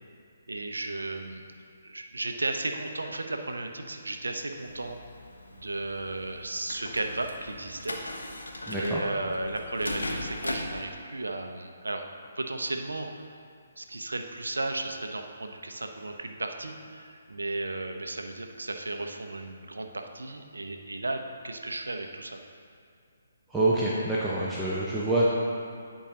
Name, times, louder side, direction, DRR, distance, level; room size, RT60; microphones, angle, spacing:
voice 1, 0.5-1.4 1.8-5.0 5.5-7.9 8.7-12.1 12.4-13.3 13.8-22.4, right 2 dB, 85° right, 5 dB, 0.6 m, -34 dB
sound 1, 4.6-10.8, left 1 dB, 85° left, 0.9 m, -39 dB
voice 2, 8.7-9.0 23.5-25.3, right 2 dB, 5° right, -8 dB, 0.8 m, -26 dB
10.0 x 4.7 x 2.9 m, 2.3 s
figure-of-eight pair, 140°, 0 cm